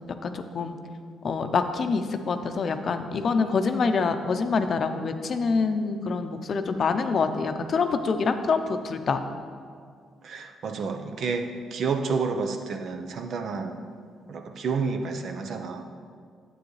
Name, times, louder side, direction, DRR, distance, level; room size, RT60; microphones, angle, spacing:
voice 1, 0.2-0.7 1.2-9.2, left 4 dB, 50° left, 8 dB, 0.6 m, -26 dB
voice 2, 10.2-13.8 14.3-15.9, right 4 dB, 60° right, 6 dB, 0.7 m, -30 dB
9.6 x 7.9 x 3.2 m, 2.1 s
cardioid pair, 90°, 0 cm